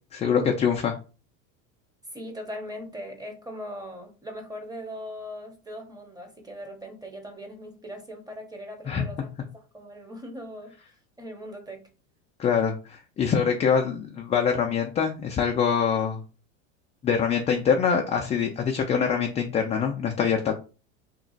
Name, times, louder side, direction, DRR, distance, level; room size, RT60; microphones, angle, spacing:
voice 1, 0.1-1.0 8.9-9.0 12.4-16.2 17.0-20.5, left 7 dB, 20° left, 0.3 m, -24 dB
voice 2, 2.1-10.8 11.2-11.9, equal, 10° right, 0.9 m, -40 dB
2.9 x 2.4 x 3.8 m
supercardioid pair, 115°, 38 cm